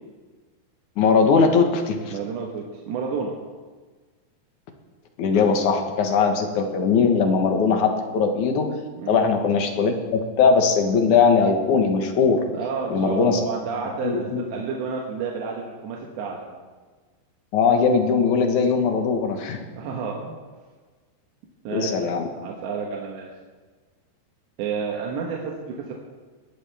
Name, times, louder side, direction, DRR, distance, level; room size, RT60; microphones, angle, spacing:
voice 1, 1.0-2.1 5.2-8.7 9.1-12.4 12.9-13.5 14.0-14.4 17.5-19.6 21.7-22.3, left 5 dB, 60° left, 4 dB, 2.3 m, -20 dB
voice 2, 2.1-3.4 9.0-9.2 12.5-16.5 19.7-20.4 21.7-23.3 24.6-25.9, right 5 dB, 85° right, -1 dB, 3.7 m, -30 dB
19.5 x 15.0 x 3.5 m, 1.4 s
omnidirectional pair, 4.9 m